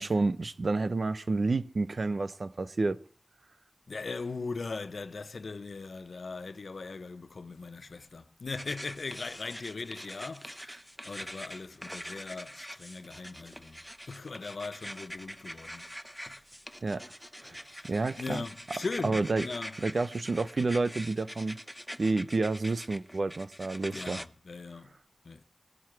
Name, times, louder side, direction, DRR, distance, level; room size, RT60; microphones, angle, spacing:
voice 1, 0.0-3.0 16.8-17.0 17.4-17.6 17.9-18.4 19.0-19.4 19.8-21.6 22.0-24.2, right 3 dB, 65° right, 0.7 m, -29 dB
voice 2, 3.9-15.9 16.3-16.4 17.4-19.8 23.9-24.9 25.2-25.4, left 4 dB, 80° left, 0.7 m, -40 dB
sound 1, 8.6-24.2, equal, ahead, 0.7 m, -44 dB
21.0 x 7.6 x 4.7 m
cardioid pair, 45°, 0 cm